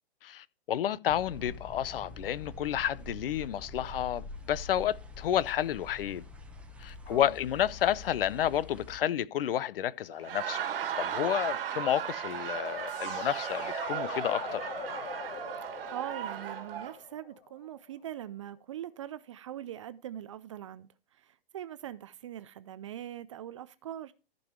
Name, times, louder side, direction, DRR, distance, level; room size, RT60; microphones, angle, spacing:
voice 1, 0.2-6.2 6.8-10.6 11.0-14.6, left 11 dB, 60° left, 0.7 m, -31 dB
sound 1, 1.1-9.0, left 2 dB, 5° right, 0.9 m, -46 dB
Laughter, 10.1-17.0, right 9 dB, 60° right, 1.6 m, -36 dB
sound 2, 12.9-17.8, left 6 dB, 20° left, 3.5 m, -42 dB
voice 2, 15.9-24.1, right 11 dB, 30° right, 0.4 m, -42 dB
14.0 x 5.4 x 4.4 m
hypercardioid pair, 140°, 33 cm